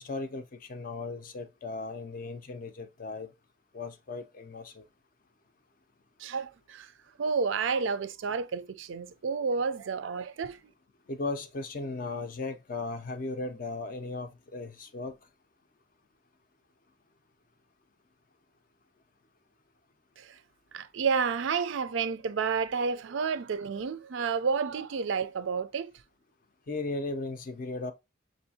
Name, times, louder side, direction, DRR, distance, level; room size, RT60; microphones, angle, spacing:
voice 1, 0.0-3.3 3.7-4.8 11.1-15.2 26.7-27.9, left 3 dB, 45° left, 0.4 m, -36 dB
voice 2, 6.2-6.9 7.2-10.6 20.2-20.4 20.7-25.9, right 5 dB, 75° right, 0.4 m, -30 dB
6.1 x 2.6 x 2.7 m
head